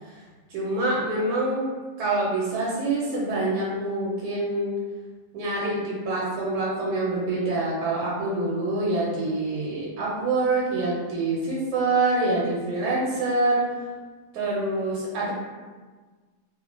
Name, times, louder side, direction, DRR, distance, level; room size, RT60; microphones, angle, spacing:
voice 1, 0.5-1.6 2.0-4.7 5.3-13.6 14.3-15.3, right 2 dB, 80° right, -5 dB, 1.2 m, -26 dB
3.0 x 2.1 x 2.4 m, 1.4 s
omnidirectional pair, 1.8 m